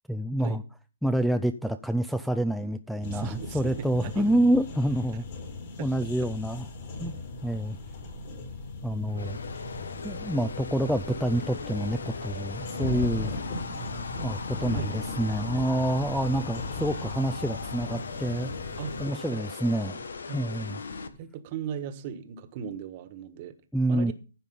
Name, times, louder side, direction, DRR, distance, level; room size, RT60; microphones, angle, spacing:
voice 1, 0.1-0.6 1.0-5.3 5.8-6.7 7.0-7.1 7.4-7.8 8.8-9.4 10.0-13.3 14.2-18.5 19.0-20.1 20.3-20.8 23.7-24.1, right 1 dB, ahead, 0.4 m, -27 dB
sound 1, 3.0-19.1, left 3 dB, 40° left, 3.9 m, -37 dB
voice 2, 3.1-4.2 5.8-5.9 14.7-14.9 18.8-19.0 19.3-19.4 20.3-20.5 21.2-23.5 23.9-24.1, right 7 dB, 35° right, 1.4 m, -37 dB
sound 2, 9.1-21.1, left 4 dB, 75° left, 1.3 m, -39 dB
sound 3, 10.7-15.1, left 1 dB, 90° left, 2.6 m, -46 dB
15.0 x 5.3 x 5.4 m
hypercardioid pair, 140°, 0 cm